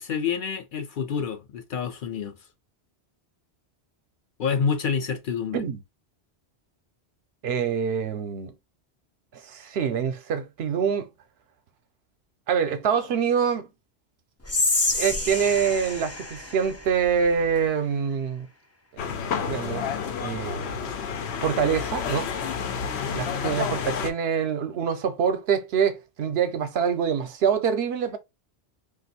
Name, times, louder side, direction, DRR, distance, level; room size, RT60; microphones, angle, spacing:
voice 1, 0.0-2.3 4.4-5.6, left 6 dB, 60° left, 0.6 m, -28 dB
voice 2, 7.4-8.5 9.3-11.1 12.5-13.7 14.9-18.5 19.4-19.8 20.2-20.9 21.4-22.3 23.1-28.2, right 7 dB, 75° right, 0.8 m, -25 dB
Whispering, 14.4-17.7, left 2 dB, 25° left, 0.3 m, -28 dB
sound 1, 19.0-24.1, left 6 dB, 85° left, 0.9 m, -30 dB
2.5 x 2.3 x 4.0 m
omnidirectional pair, 1.1 m